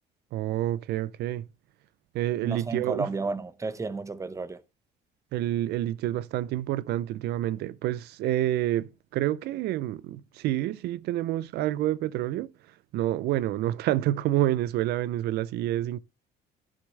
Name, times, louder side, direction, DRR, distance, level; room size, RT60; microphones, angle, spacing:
voice 1, 0.3-1.4 2.1-3.1 5.3-12.5 12.9-16.0, right 13 dB, 75° right, 0.5 m, -28 dB
voice 2, 2.4-4.6, right 3 dB, 20° right, 0.8 m, -32 dB
11.5 x 6.4 x 3.2 m
cardioid pair, 110°, 17 cm